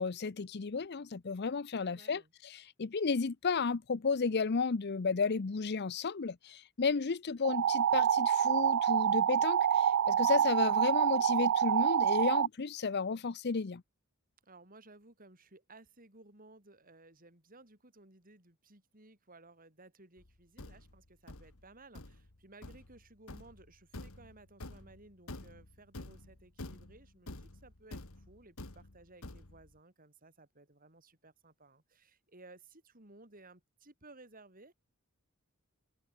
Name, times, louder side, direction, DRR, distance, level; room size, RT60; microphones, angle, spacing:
voice 1, 0.0-13.8, left 4 dB, 50° left, 0.6 m, -33 dB
voice 2, 1.8-2.3 14.4-34.7, right 2 dB, 40° right, 5.8 m, -58 dB
sound 1, 7.4-12.5, right 9 dB, 60° right, 0.3 m, -27 dB
Thump thud, 20.2-29.8, left 2 dB, 75° left, 2.1 m, -49 dB
open air
head